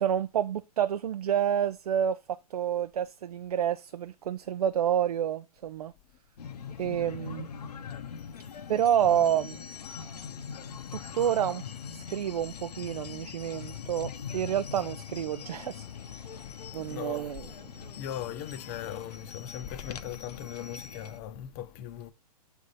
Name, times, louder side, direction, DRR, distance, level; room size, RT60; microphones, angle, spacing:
voice 1, 0.0-5.9 6.8-7.5 8.7-9.6 10.9-11.6 11.9-15.9 16.1-16.2 16.7-17.4, right 9 dB, 70° right, 0.5 m, -29 dB
sound 1, 6.4-21.2, left 7 dB, 75° left, 0.9 m, -42 dB
voice 2, 8.3-8.7 10.8-11.1 16.4-17.3 17.8-22.1, left 11 dB, 30° left, 0.7 m, -40 dB
7.3 x 3.5 x 4.0 m
hypercardioid pair, 130°, 20 cm